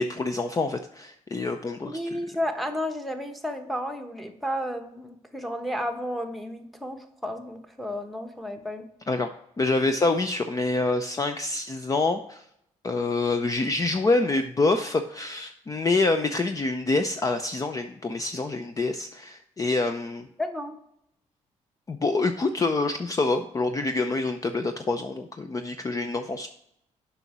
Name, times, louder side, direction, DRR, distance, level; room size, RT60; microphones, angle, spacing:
voice 1, 0.0-2.0 9.1-9.3 9.6-12.4 12.8-20.3 21.9-26.5, left 3 dB, 25° left, 7 dB, 0.5 m, -26 dB
voice 2, 1.8-8.8 20.4-20.8, equal, ahead, 5 dB, 1.2 m, -32 dB
6.9 x 5.6 x 6.0 m, 0.74 s
cardioid pair, 95°, 13 cm